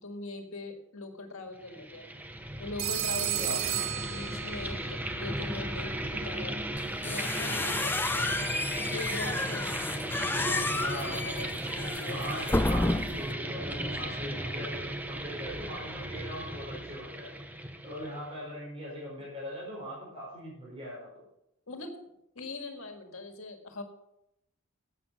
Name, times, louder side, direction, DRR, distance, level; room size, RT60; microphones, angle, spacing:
voice 1, 0.0-2.1 2.6-6.6 7.0-8.5 8.9-9.7 10.2-12.3 21.7-21.9 22.4-23.8, left 2 dB, 70° left, 5 dB, 1.8 m, -41 dB
sound 1, 1.6-18.3, right 1 dB, 10° right, 0.8 m, -36 dB
Telephone, 2.8-4.9, right 11 dB, 70° right, 1.1 m, -32 dB
sound 2, 6.8-13.3, left 2 dB, 10° left, 0.4 m, -31 dB
voice 2, 10.7-11.7 12.1-17.3 17.8-21.2, equal, 25° right, -5 dB, 4.9 m, -40 dB
11.5 x 8.3 x 6.1 m, 0.83 s
head